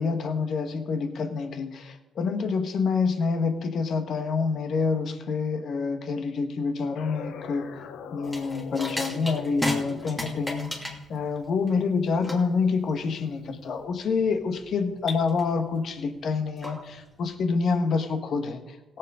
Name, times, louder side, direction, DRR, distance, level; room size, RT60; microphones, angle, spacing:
voice 1, 0.0-7.8 8.1-19.0, left 4 dB, 60° left, 7 dB, 1.5 m, -27 dB
sound 1, 6.9-12.3, left 7 dB, 85° left, 0.8 m, -43 dB
sound 2, 8.2-17.3, left 1 dB, 10° left, 2.8 m, -36 dB
17.0 x 7.8 x 4.9 m, 1.1 s
cardioid pair, 90°, 0 cm